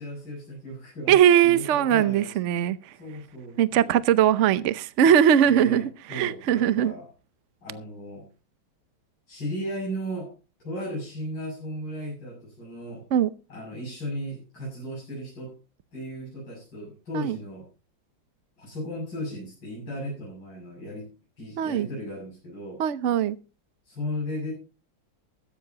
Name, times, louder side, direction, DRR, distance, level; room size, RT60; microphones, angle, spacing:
voice 1, 0.0-1.2 1.4-2.4 3.0-4.0 5.5-7.1 7.6-8.3 9.3-10.3 10.6-13.0 13.5-15.5 15.9-17.7 18.6-21.1 21.4-22.8 23.9-24.5, equal, 65° left, 8.0 m, -36 dB
voice 2, 1.1-2.8 3.6-6.9 13.1-13.3 17.1-17.4 21.6-21.9 22.8-23.4, right 9 dB, 70° right, 0.7 m, -20 dB
15.0 x 14.0 x 2.9 m
omnidirectional pair, 2.2 m